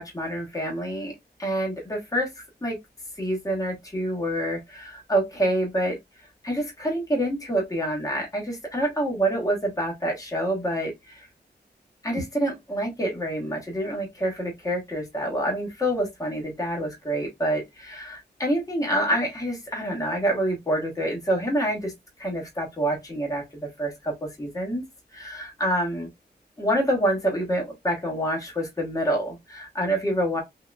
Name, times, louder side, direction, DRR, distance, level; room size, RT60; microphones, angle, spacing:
voice 1, 0.0-2.8 3.2-6.0 6.4-11.3 12.0-21.9 22.2-24.8 25.1-26.1 26.6-30.4, right 1 dB, 20° left, 1.2 m, -27 dB
3.7 x 2.8 x 2.3 m
wide cardioid pair, 130°, 18 cm